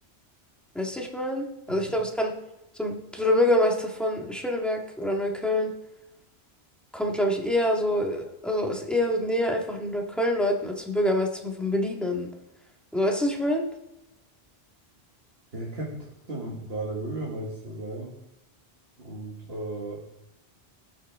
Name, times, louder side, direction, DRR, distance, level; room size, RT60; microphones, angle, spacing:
voice 1, 0.7-2.3 2.7-5.7 6.9-12.3 12.9-13.7, left 1 dB, ahead, 0 dB, 1.8 m, -26 dB
voice 2, 15.5-18.1 19.0-20.0, right 2 dB, 70° right, -4 dB, 2.0 m, -35 dB
18.5 x 6.4 x 3.7 m, 0.92 s
omnidirectional pair, 1.1 m